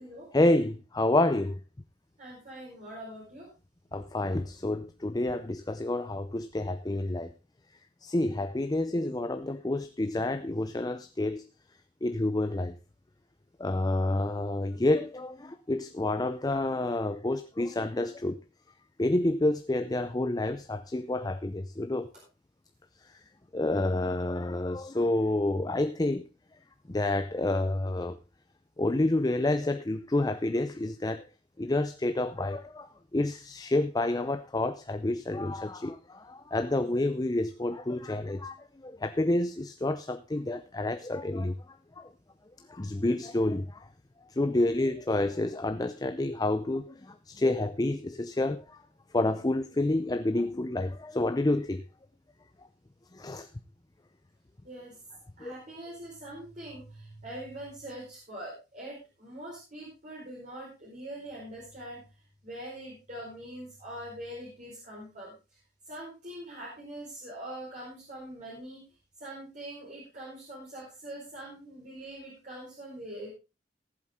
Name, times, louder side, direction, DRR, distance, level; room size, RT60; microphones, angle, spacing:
voice 1, 0.3-1.6 3.9-7.3 8.0-11.4 12.0-12.7 13.6-18.4 19.0-22.1 23.5-26.2 26.9-28.2 28.8-31.2 31.6-32.9 33.1-38.6 38.8-41.5 42.0-42.1 42.7-43.8 44.4-48.8 49.1-51.8 53.1-53.5 55.4-55.5, left 2 dB, 20° left, 0.6 m, -29 dB
voice 2, 2.2-3.5 8.8-9.0 54.6-55.0 55.4-62.0 62.4-65.3 65.9-68.8 69.2-73.3, right 1 dB, 45° right, 4.7 m, -43 dB
18.0 x 7.8 x 3.6 m
head